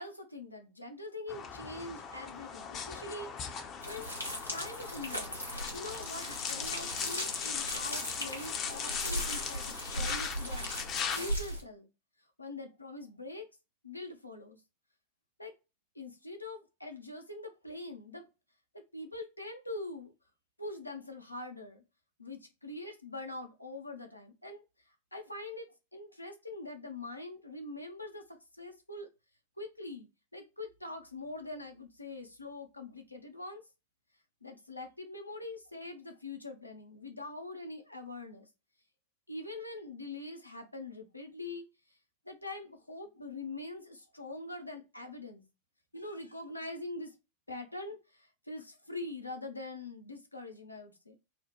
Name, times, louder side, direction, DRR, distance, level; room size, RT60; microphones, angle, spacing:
voice 1, 0.0-3.3 3.9-4.1 4.5-5.4 5.7-10.7 11.1-11.9 12.4-13.5 13.8-14.6 15.4-15.5 15.9-18.3 18.7-20.1 20.6-21.8 22.2-24.6 25.1-29.1 29.6-33.6 34.4-38.5 39.3-41.7 42.3-45.4 45.9-47.1 47.5-51.2, left 2 dB, 85° left, 4 dB, 0.6 m, -43 dB
sound 1, 1.3-11.3, left 7 dB, 30° left, 0.5 m, -39 dB
sound 2, 3.8-11.6, equal, 90° right, 0.9 m, -38 dB
2.8 x 2.1 x 2.9 m, 0.27 s
figure-of-eight pair, 90°, 0 cm